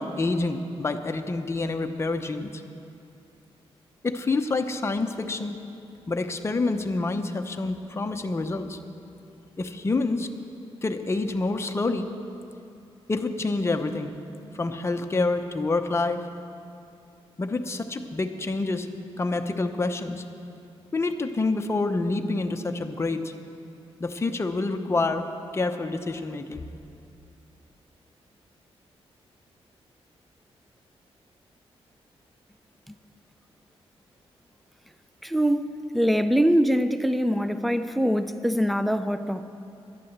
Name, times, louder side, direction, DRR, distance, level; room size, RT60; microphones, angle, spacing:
voice 1, 0.0-2.6 4.0-5.6 6.1-8.8 9.6-10.3 10.8-12.1 13.1-14.2 14.5-16.2 17.4-18.9 19.2-20.2 20.9-23.3 24.0-25.2 25.5-26.6, left 3 dB, 25° left, 6 dB, 0.8 m, -27 dB
voice 2, 35.2-39.4, equal, ahead, 10 dB, 0.5 m, -23 dB
11.0 x 11.0 x 7.4 m, 2.6 s
cardioid pair, 100°, 10 cm